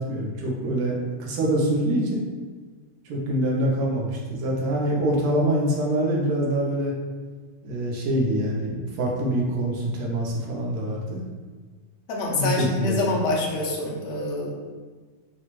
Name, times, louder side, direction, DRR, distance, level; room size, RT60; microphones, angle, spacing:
voice 1, 0.0-2.3 3.0-6.9 7.6-11.2 12.3-13.2, right 1 dB, 65° right, -3 dB, 1.2 m, -25 dB
voice 2, 12.1-14.6, left 2 dB, 60° left, -2 dB, 0.8 m, -26 dB
4.1 x 2.4 x 3.0 m, 1.4 s
omnidirectional pair, 1.9 m